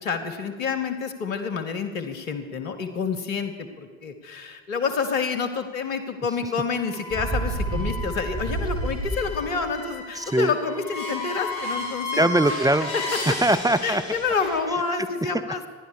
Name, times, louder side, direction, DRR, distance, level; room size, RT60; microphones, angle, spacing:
voice 1, 0.0-12.3 12.9-13.3 13.8-15.7, left 5 dB, 85° left, 6 dB, 1.1 m, -28 dB
sound 1, 6.9-14.6, left 2 dB, 70° left, 3.4 m, -34 dB
Bird, 7.1-9.6, right 2 dB, 35° right, 3.8 m, -29 dB
voice 2, 10.2-10.5 12.1-12.9 13.3-14.0 15.3-15.4, right 1 dB, 10° right, 11 dB, 0.5 m, -21 dB
14.5 x 10.5 x 6.5 m, 1.5 s
figure-of-eight pair, 50°, 39 cm